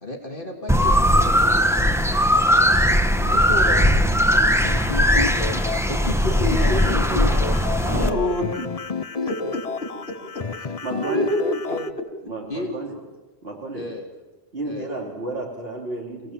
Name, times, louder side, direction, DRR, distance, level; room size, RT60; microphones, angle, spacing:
voice 1, 0.0-1.4 3.2-4.0 5.9-7.5 9.4-9.5 11.7-11.9 12.5-12.7 13.7-14.1 14.6-14.9, left 2 dB, 55° left, 2 dB, 2.8 m, -32 dB
sound 1, 0.7-8.1, equal, 5° right, 1.2 m, -19 dB
sound 2, 4.5-11.9, left 5 dB, 40° left, 0.9 m, -31 dB
voice 2, 6.4-6.9 7.8-8.6 9.3-9.6 10.7-11.7, left 1 dB, 80° left, 2 dB, 4.4 m, -26 dB
voice 3, 10.8-11.3 12.2-13.0 13.4-13.8 14.5-16.3, right 2 dB, 70° right, -1 dB, 3.5 m, -32 dB
28.5 x 17.5 x 7.5 m, 1.2 s
omnidirectional pair, 1.0 m